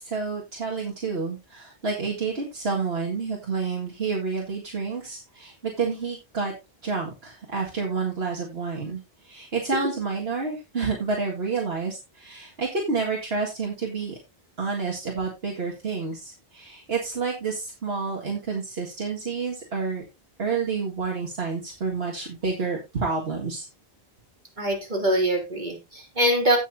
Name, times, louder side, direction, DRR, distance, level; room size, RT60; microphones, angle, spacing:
voice 1, 0.0-6.5 6.8-14.2 14.6-20.0 20.4-23.7, right 4 dB, 80° right, -1 dB, 2.2 m, -29 dB
voice 2, 24.6-26.6, equal, 50° right, 2 dB, 3.4 m, -23 dB
17.0 x 6.0 x 2.7 m, 0.24 s
omnidirectional pair, 1.0 m